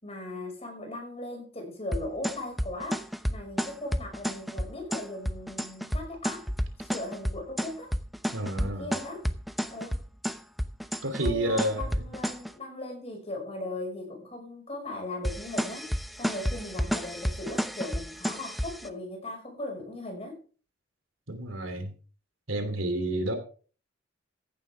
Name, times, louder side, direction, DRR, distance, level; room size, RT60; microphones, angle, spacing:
voice 1, 0.0-6.5 6.8-7.9 8.6-9.3 9.7-10.0 11.2-20.4, left 1 dB, 30° left, 2 dB, 5.7 m, -38 dB
sound 1, 1.9-12.5 15.2-18.9, equal, ahead, 0.8 m, -31 dB
voice 2, 8.3-8.9 11.0-12.0 21.3-21.9 22.5-23.3, right 1 dB, 85° right, 7 dB, 3.0 m, -30 dB
15.0 x 11.0 x 3.5 m, 0.39 s
head